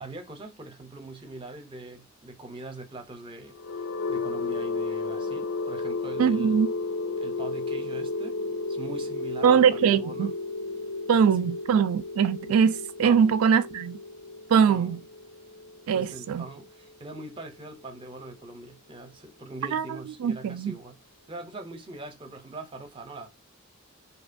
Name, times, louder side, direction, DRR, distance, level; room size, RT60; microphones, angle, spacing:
voice 1, 0.0-6.6 7.2-8.4 8.7-10.3 11.1-11.6 13.0-13.4 14.7-15.0 15.9-21.0 21.3-23.3, right 2 dB, 25° right, 0.5 m, -42 dB
sound 1, 3.5-17.4, left 3 dB, 70° left, 0.3 m, -33 dB
voice 2, 6.2-6.7 9.4-10.3 11.1-14.0 14.5-15.0 15.9-16.5 19.7-19.9 20.2-20.7, right 7 dB, 85° right, 0.3 m, -22 dB
2.7 x 2.2 x 2.5 m
head